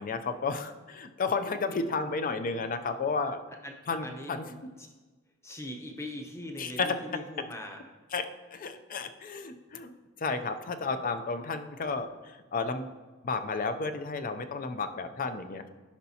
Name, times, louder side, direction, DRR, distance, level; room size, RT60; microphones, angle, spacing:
voice 1, 0.0-3.4 3.9-4.5 6.6-6.9 8.1-8.2 8.5-9.9 10.2-12.9 13.2-15.7, left 4 dB, 45° left, 9 dB, 0.5 m, -32 dB
voice 2, 4.0-4.6 5.4-7.8, left 1 dB, 15° left, 2 dB, 0.8 m, -41 dB
10.5 x 5.6 x 2.8 m, 1.2 s
head